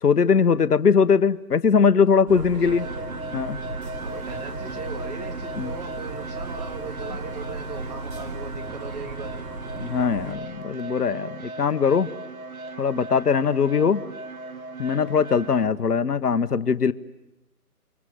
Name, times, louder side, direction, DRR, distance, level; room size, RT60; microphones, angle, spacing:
voice 1, 0.0-2.8 3.3-3.6 5.6-5.7 9.8-12.1 12.8-14.0 14.8-16.9, left 6 dB, 75° left, 13 dB, 1.2 m, -21 dB
voice 2, 2.3-3.1 4.0-9.5, right 4 dB, 25° right, 3 dB, 2.8 m, -38 dB
sound 1, 2.3-10.3, right 2 dB, 85° right, 5.8 m, -36 dB
sound 2, 2.6-15.7, right 3 dB, 60° right, 2.3 m, -38 dB
29.5 x 25.0 x 7.8 m, 0.93 s
figure-of-eight pair, 155°, 47 cm